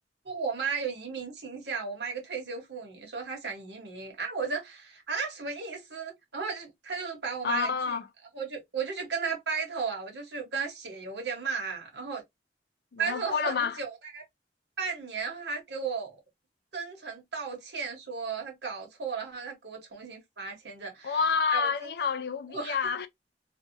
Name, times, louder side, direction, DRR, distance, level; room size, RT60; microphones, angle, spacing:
voice 1, 0.2-8.0 8.3-12.2 13.0-14.2 14.8-16.1 16.7-21.2 21.5-21.9 22.5-22.9, right 5 dB, 75° right, 1.1 m, -35 dB
voice 2, 7.4-8.1 12.9-13.8 21.0-23.1, left 6 dB, 60° left, 0.5 m, -28 dB
2.6 x 2.3 x 2.6 m
head